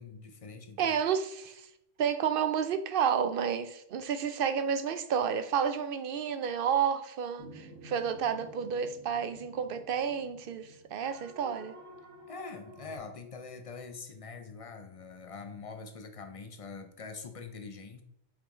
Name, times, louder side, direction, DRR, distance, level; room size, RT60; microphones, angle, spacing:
voice 1, 0.0-1.0 12.3-18.0, left 4 dB, 40° left, 7 dB, 0.5 m, -44 dB
voice 2, 0.8-1.7 2.0-11.8, right 7 dB, 60° right, 11 dB, 0.6 m, -30 dB
sound 1, 7.4-13.0, right 1 dB, 85° right, 1.7 m, -51 dB
5.5 x 4.9 x 3.7 m, 0.75 s
omnidirectional pair, 1.3 m